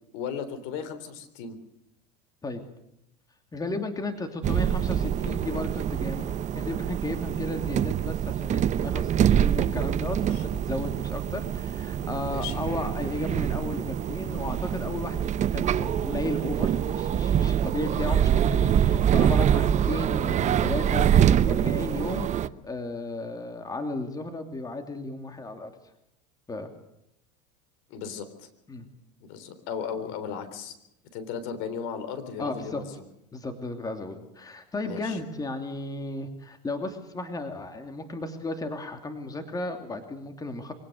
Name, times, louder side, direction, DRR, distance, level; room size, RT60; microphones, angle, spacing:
voice 1, 0.1-1.6 10.3-10.4 12.3-12.6 27.9-28.5 29.2-30.7 31.1-33.0 34.8-35.2, left 7 dB, 65° left, 11 dB, 3.6 m, -36 dB
voice 2, 3.5-22.3 22.6-25.7 26.5-26.7 28.7-28.9 32.4-32.8 33.3-40.7, left 2 dB, 15° left, 6 dB, 2.9 m, -34 dB
sound 1, 4.4-22.5, right 9 dB, 35° right, 0.8 m, -25 dB
24.0 x 17.5 x 6.6 m, 0.81 s
supercardioid pair, 100°, 21 cm